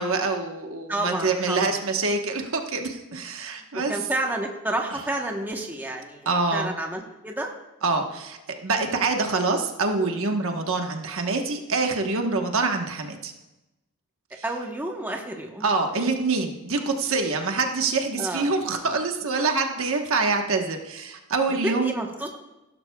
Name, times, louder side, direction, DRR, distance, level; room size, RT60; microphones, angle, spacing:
voice 1, 0.0-3.9 6.3-6.7 7.8-13.3 15.6-21.9, right 3 dB, 65° right, 3 dB, 1.2 m, -25 dB
voice 2, 0.9-1.8 3.6-3.7 3.9-7.5 14.4-15.6 18.2-18.5 21.5-22.4, right 1 dB, 10° right, 1 dB, 1.0 m, -30 dB
16.5 x 11.5 x 2.3 m, 1.0 s
head